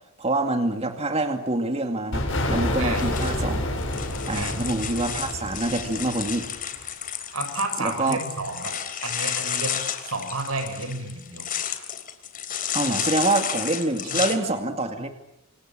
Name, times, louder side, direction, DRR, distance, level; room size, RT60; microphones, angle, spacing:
voice 1, 0.2-3.6 4.3-6.5 7.8-8.2 12.7-15.1, right 2 dB, 30° right, 6 dB, 2.3 m, -26 dB
sound 1, 2.1-6.8, left 1 dB, 60° left, 7.7 m, -28 dB
voice 2, 2.8-3.1 4.3-4.6 7.3-8.8 9.0-11.5 14.1-14.2, right 2 dB, 90° right, 6 dB, 7.5 m, -31 dB
sound 2, 2.9-14.4, left 9 dB, 40° left, 3.6 m, -31 dB
28.5 x 27.5 x 7.5 m, 0.80 s
head